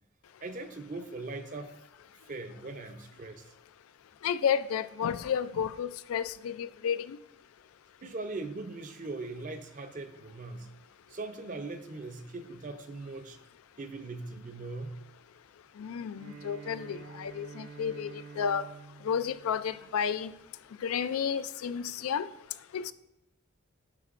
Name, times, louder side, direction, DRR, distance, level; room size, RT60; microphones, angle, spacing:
voice 1, 0.4-1.7 2.3-3.5 8.0-10.7 11.1-13.4 13.8-15.0, right 3 dB, 40° right, 8 dB, 0.5 m, -40 dB
voice 2, 4.2-7.2 15.8-18.6 19.0-20.3 20.8-22.3 22.7-22.9, left 7 dB, 85° left, 13 dB, 0.4 m, -31 dB
Bowed string instrument, 16.1-20.4, right 5 dB, 85° right, 0.5 m, -49 dB
9.7 x 5.9 x 2.5 m, 0.89 s
head